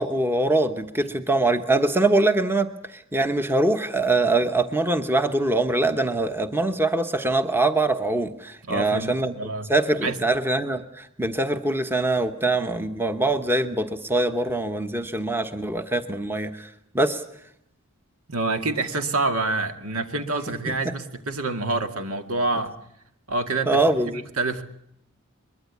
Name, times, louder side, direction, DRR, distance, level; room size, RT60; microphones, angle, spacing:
voice 1, 0.0-9.3 9.7-16.7 16.9-17.2 23.7-24.2, right 2 dB, 10° right, 8 dB, 1.1 m, -23 dB
voice 2, 8.6-9.7 10.0-10.2 18.3-22.7 23.3-23.8 24.1-24.6, right 3 dB, 75° right, 6 dB, 2.2 m, -27 dB
22.5 x 22.5 x 8.3 m, 0.74 s
head